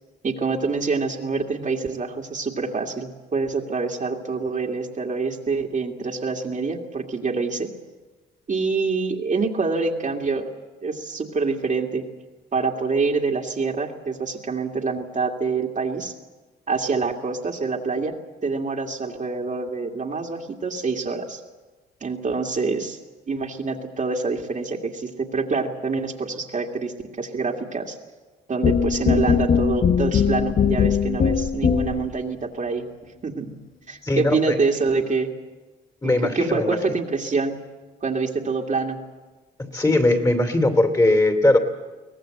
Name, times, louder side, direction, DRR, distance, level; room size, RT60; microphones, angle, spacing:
voice 1, 0.2-7.7 8.5-10.5 10.8-12.1 12.5-16.1 16.7-18.2 18.4-21.4 22.0-23.0 23.3-28.0 28.5-32.9 33.2-33.6 33.9-35.3 36.0-37.6 38.0-39.0, right 4 dB, 40° right, 1 dB, 2.2 m, -26 dB
sound 1, 28.6-32.2, left 7 dB, 45° left, 0.9 m, -20 dB
voice 2, 34.0-34.6 36.0-36.8 39.6-41.6, left 2 dB, 15° left, 6 dB, 2.9 m, -19 dB
23.0 x 18.0 x 7.9 m, 1.3 s
cardioid pair, 90°, 20 cm